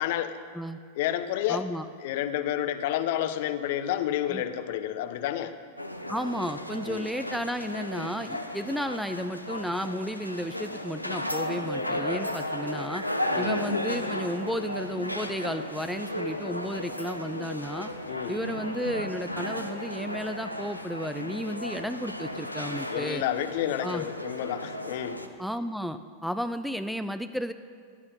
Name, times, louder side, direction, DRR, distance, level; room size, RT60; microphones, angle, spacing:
voice 1, 0.0-0.4 0.9-1.6 2.0-5.5 6.9-7.1 13.3-13.5 18.1-18.3 22.9-25.2, left 11 dB, 50° left, 11 dB, 0.9 m, -30 dB
voice 2, 1.5-1.9 4.3-4.4 6.1-13.0 13.4-17.9 18.3-23.2 23.8-24.1 25.4-27.5, equal, ahead, 10 dB, 0.5 m, -33 dB
sound 1, 5.8-25.3, left 1 dB, 90° left, 1.0 m, -34 dB
17.5 x 11.5 x 5.6 m, 2.1 s
figure-of-eight pair, 90°, 0 cm